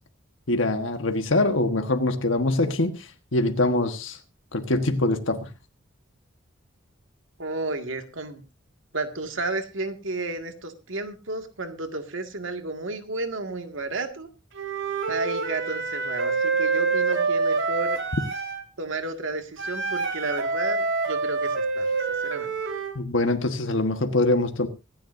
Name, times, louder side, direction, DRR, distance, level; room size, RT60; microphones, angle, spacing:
voice 1, 0.5-4.2 4.5-5.5 22.9-24.7, left 2 dB, 80° left, 7 dB, 1.4 m, -24 dB
voice 2, 7.4-8.4 8.9-14.3 15.1-18.0 18.8-21.9 22.2-22.6, right 2 dB, 85° right, 6 dB, 2.0 m, -32 dB
Wind instrument woodwind instrument, 14.5-18.6 19.6-22.9, right 4 dB, 70° right, 2.8 m, -26 dB
25.0 x 10.0 x 2.6 m, 0.28 s
head